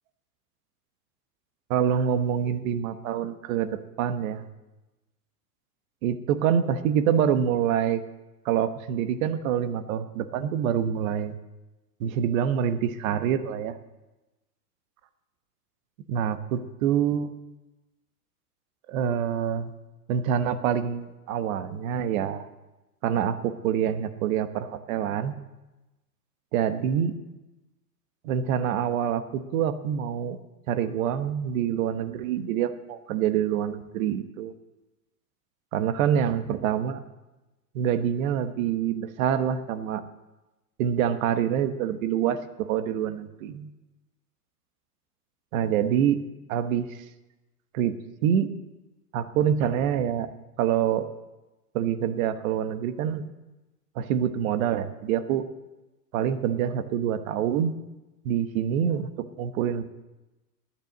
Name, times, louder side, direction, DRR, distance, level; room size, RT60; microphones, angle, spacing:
voice 1, 1.7-4.4 6.0-8.0 8.4-11.3 12.0-13.8 16.1-17.3 18.9-19.7 20.1-22.5 23.0-25.3 26.5-27.2 28.2-30.4 30.7-34.5 35.7-37.0 37.7-40.0 40.8-43.7 45.5-46.2 46.5-46.9 47.7-48.0 48.2-48.5 49.1-50.3 50.6-51.1 51.7-53.3 54.0-55.4 56.1-57.7 58.2-59.1 59.4-59.8, right 9 dB, 55° right, 11 dB, 1.2 m, -26 dB
10.5 x 9.2 x 8.1 m, 1.0 s
hypercardioid pair, 115°, 47 cm